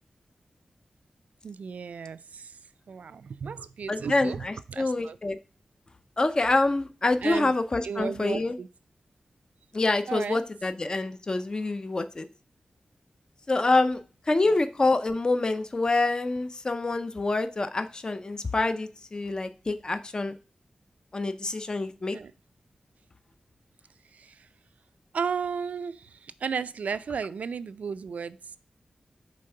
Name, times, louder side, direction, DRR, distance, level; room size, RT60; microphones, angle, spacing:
voice 1, 1.4-2.6 2.9-5.2 7.2-7.5 7.8-8.7 10.1-10.4 14.4-14.6 22.1-22.3 24.1-24.5 25.1-28.6, right 6 dB, 85° right, 14 dB, 0.3 m, -34 dB
voice 2, 3.9-5.4 6.2-8.5 9.7-12.2 13.5-14.0 14.3-20.3 21.1-22.2, left 2 dB, 35° left, 10 dB, 0.5 m, -26 dB
5.2 x 3.5 x 5.5 m, 0.36 s
wide cardioid pair, 100°, 2 cm